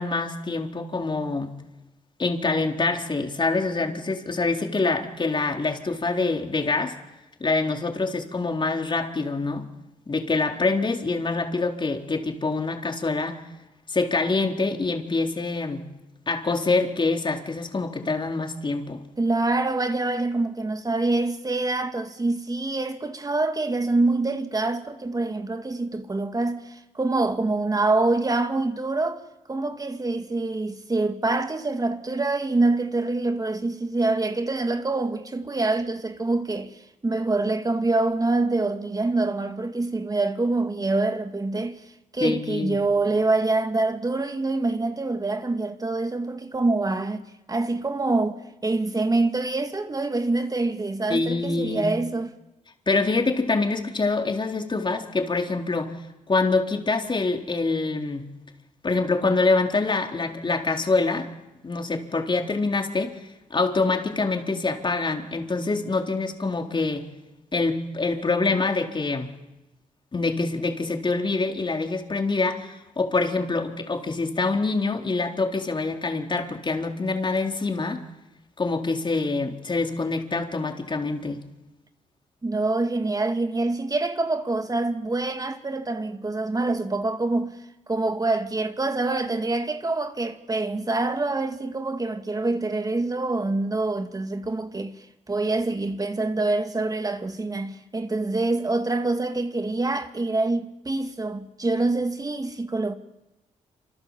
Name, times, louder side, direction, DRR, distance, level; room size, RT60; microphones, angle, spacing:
voice 1, 0.0-1.5 2.2-6.9 7.4-9.7 10.1-13.4 13.9-15.9 16.3-19.0 42.2-42.8 51.1-51.9 52.9-56.0 56.3-58.3 58.8-61.3 61.6-63.1 63.5-67.1 67.5-69.3 70.1-78.0 78.6-81.4, left 3 dB, 35° left, 4.1 m, -25 dB
voice 2, 19.2-29.2 29.5-36.8 37.0-41.8 42.1-52.3 82.4-87.5 87.9-94.9 95.3-103.0, right 2 dB, 25° right, 2.4 m, -25 dB
28.0 x 27.0 x 7.6 m
supercardioid pair, 60°, 14 cm